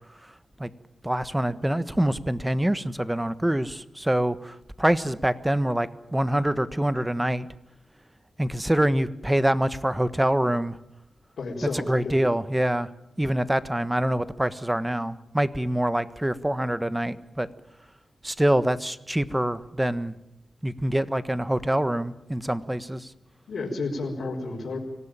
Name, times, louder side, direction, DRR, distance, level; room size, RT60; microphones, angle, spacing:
voice 1, 1.0-7.5 8.4-10.8 11.9-12.9 13.2-17.5 18.2-20.2 20.6-23.1, right 1 dB, 10° right, 13 dB, 1.4 m, -25 dB
voice 2, 11.4-12.2 23.5-24.8, left 3 dB, 85° left, -3 dB, 4.7 m, -31 dB
25.5 x 17.5 x 9.0 m, 0.86 s
cardioid pair, 80°, 0 cm